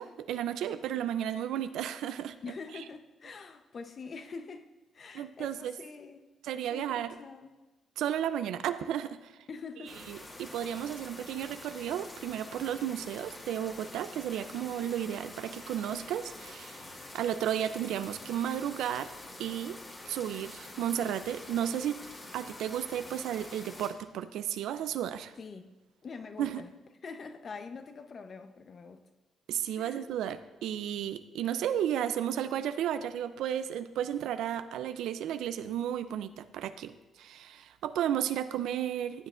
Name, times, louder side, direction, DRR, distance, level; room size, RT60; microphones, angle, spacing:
voice 1, 0.0-2.3 5.1-5.7 6.4-7.1 8.0-9.3 10.1-16.9 17.1-19.1 19.4-19.8 20.1-22.0 22.3-25.3 26.4-26.6 29.5-36.9 37.2-39.3, right 10 dB, 85° right, 0.5 m, -33 dB
voice 2, 2.4-4.7 4.9-6.3 6.7-7.5 9.5-10.0 25.4-25.7 26.0-26.7 27.0-29.0 29.8-30.1, left 4 dB, 45° left, 0.8 m, -44 dB
sound 1, 9.8-23.9, left 2 dB, 30° left, 1.8 m, -47 dB
14.5 x 8.2 x 2.5 m
cardioid pair, 90°, 0 cm